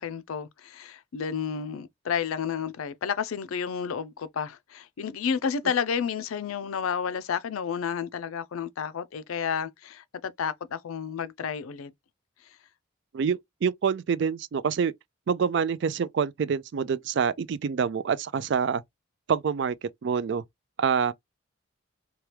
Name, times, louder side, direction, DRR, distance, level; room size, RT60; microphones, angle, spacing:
voice 1, 0.0-11.9, left 7 dB, 85° left, 0.4 m, -31 dB
voice 2, 13.1-14.9 15.3-18.8 19.3-20.4 20.8-21.1, right 6 dB, 55° right, 0.3 m, -26 dB
2.9 x 2.2 x 3.2 m
head